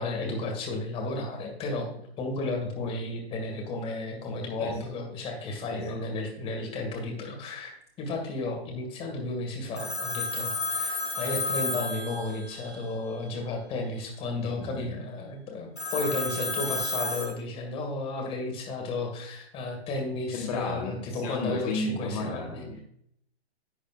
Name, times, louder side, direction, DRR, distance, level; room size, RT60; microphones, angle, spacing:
voice 1, 0.0-1.9 2.2-22.7, left 2 dB, 15° left, 1 dB, 2.1 m, -33 dB
voice 2, 5.6-6.0 14.5-15.0 20.3-22.8, left 2 dB, 35° left, 0 dB, 1.6 m, -34 dB
Telephone, 9.8-12.8 15.8-17.3, left 3 dB, 80° left, 3.7 m, -31 dB
11.0 x 8.2 x 2.5 m, 0.69 s
figure-of-eight pair, 130°, 32 cm